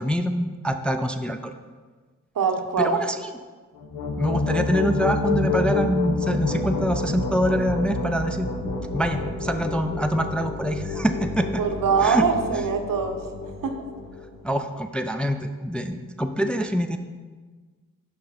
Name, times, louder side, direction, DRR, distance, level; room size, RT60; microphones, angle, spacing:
voice 1, 0.0-1.5 2.8-3.3 4.2-8.5 8.9-11.6 12.0-12.2 12.5-12.7 14.4-17.0, equal, 5° left, 6 dB, 0.4 m, -25 dB
voice 2, 2.4-2.9 11.6-13.2 13.6-13.7, right 6 dB, 70° right, 6 dB, 0.8 m, -23 dB
sound 1, 3.8-14.4, left 3 dB, 75° left, 1.1 m, -28 dB
6.0 x 5.3 x 4.3 m, 1.4 s
cardioid pair, 40°, 35 cm